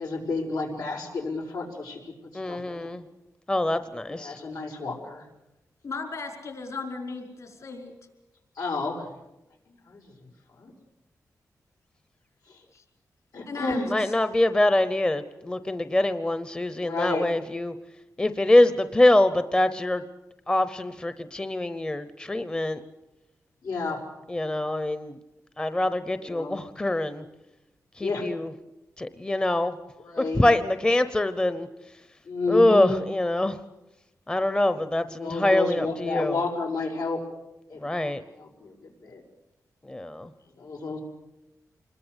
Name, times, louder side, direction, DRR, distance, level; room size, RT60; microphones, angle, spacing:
voice 1, 0.0-2.0 2.5-2.9 4.1-5.2 8.6-9.0 9.9-10.0 10.6-10.7 13.3-13.9 16.8-17.3 23.6-24.0 26.2-26.5 28.0-28.2 30.1-30.4 32.3-33.0 35.2-37.2 37.7-38.7 39.0-39.2 40.6-41.0, left 3 dB, 90° left, 1 dB, 5.8 m, -30 dB
voice 2, 2.3-3.0 3.5-4.4 13.9-17.7 18.2-20.0 20.5-22.8 24.3-25.2 25.6-27.2 28.0-28.5 29.0-29.7 30.2-31.7 32.5-33.6 34.3-36.4 37.8-38.2 39.9-40.3, left 1 dB, 15° left, 11 dB, 0.8 m, -24 dB
voice 3, 5.8-7.9 12.7-12.8 13.4-14.1, left 4 dB, 60° left, 3 dB, 5.0 m, -36 dB
26.5 x 21.5 x 8.2 m, 0.96 s
wide cardioid pair, 155°, 6 cm